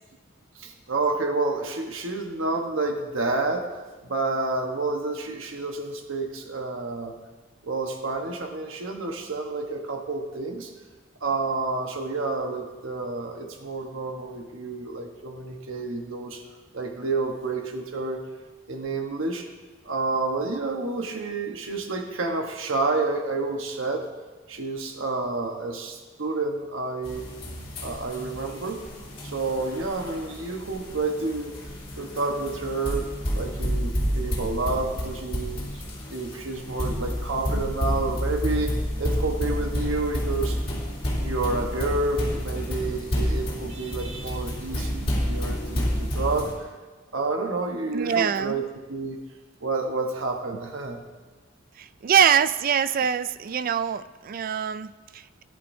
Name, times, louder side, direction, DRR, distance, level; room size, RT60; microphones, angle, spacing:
voice 1, 0.6-3.7 4.0-7.2 7.6-10.7 11.2-16.4 16.7-18.2 18.7-19.5 19.8-24.1 24.5-27.3 27.8-28.8 29.2-31.6 32.0-33.1 33.3-35.8 36.1-40.6 41.2-46.7 47.1-49.2 49.6-51.0, right 3 dB, 80° right, 3 dB, 1.2 m, -29 dB
sound 1, 27.0-46.5, equal, 30° left, 3.3 m, -30 dB
voice 2, 47.9-48.6 52.0-54.9, right 8 dB, 45° right, 14 dB, 0.4 m, -23 dB
17.5 x 10.5 x 2.7 m, 1.3 s
head